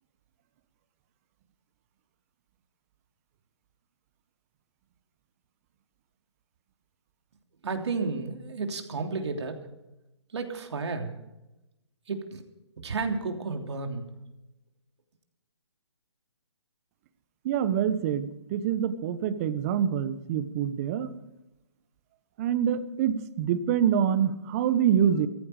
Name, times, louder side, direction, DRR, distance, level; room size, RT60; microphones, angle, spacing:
voice 1, 7.6-9.6 10.3-11.1 12.1-12.4 12.8-14.0, right 4 dB, 65° right, 4 dB, 3.2 m, -32 dB
voice 2, 17.4-21.1 22.4-25.3, right 9 dB, 30° right, 13 dB, 1.2 m, -26 dB
17.0 x 14.5 x 5.1 m, 0.94 s
hypercardioid pair, 150°, 15 cm